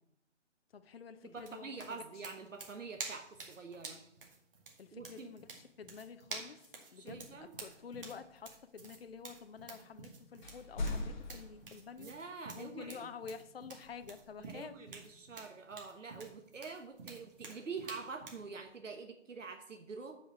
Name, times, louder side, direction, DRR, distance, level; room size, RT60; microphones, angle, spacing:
voice 1, 0.7-2.0 4.8-6.6 6.9-12.1 12.5-14.7, left 6 dB, 55° left, 9 dB, 0.6 m, -49 dB
voice 2, 1.2-4.0 4.9-5.3 6.9-7.5 12.0-13.1 14.5-20.2, right 4 dB, 85° right, 4 dB, 1.3 m, -46 dB
sound 1, 1.4-18.5, right 3 dB, 45° right, 2.0 m, -49 dB
sound 2, 7.1-10.1 10.4-12.6 13.8-14.9 16.7-17.3 18.0-18.8, left 2 dB, 40° left, 1.2 m, -45 dB
7.7 x 5.0 x 7.2 m, 0.78 s
hypercardioid pair, 165°, 37 cm